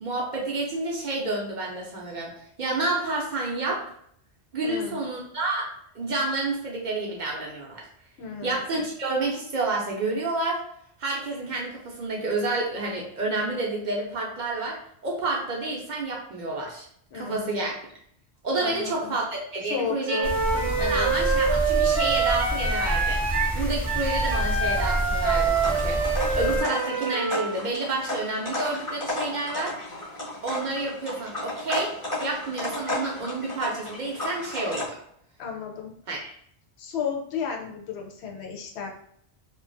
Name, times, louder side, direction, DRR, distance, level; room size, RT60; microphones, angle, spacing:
voice 1, 0.0-2.3 2.6-3.8 4.5-5.7 6.0-7.8 8.4-10.6 11.0-14.8 15.0-16.9 17.1-17.8 18.4-23.2 23.5-26.1 26.3-29.7 30.4-31.9 32.2-35.0 36.1-36.3, right 2 dB, 55° right, -2 dB, 0.6 m, -29 dB
voice 2, 4.6-5.1 8.2-8.7 17.1-17.6 18.6-19.2 19.6-20.3 20.8-21.1 35.4-35.9 36.8-38.9, left 7 dB, 80° left, 2 dB, 0.8 m, -33 dB
Wind instrument woodwind instrument, 20.1-27.5, right 5 dB, 85° right, 0.8 m, -26 dB
sound 1, 20.2-26.6, equal, ahead, 0.4 m, -29 dB
sound 2, 25.4-34.9, left 1 dB, 20° left, 0.8 m, -34 dB
2.4 x 2.2 x 2.5 m, 0.66 s
omnidirectional pair, 1.1 m